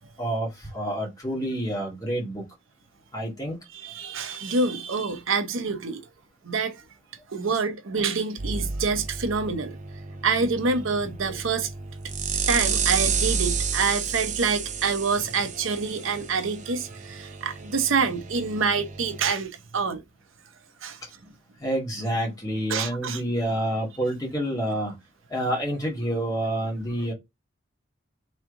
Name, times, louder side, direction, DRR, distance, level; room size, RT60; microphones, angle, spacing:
voice 1, 0.2-2.5 3.1-3.6 21.6-25.0 25.3-27.1, right 1 dB, 15° left, 1.8 m, -28 dB
voice 2, 3.7-6.0 6.4-6.8 7.3-9.8 10.2-11.7 12.5-20.0 20.8-21.0 22.7-23.2, right 4 dB, 75° right, 0.7 m, -26 dB
Ocean of Bits Electric Waves Noise, 8.4-19.3, right 5 dB, 35° right, 0.6 m, -31 dB
3.5 x 3.2 x 3.6 m
head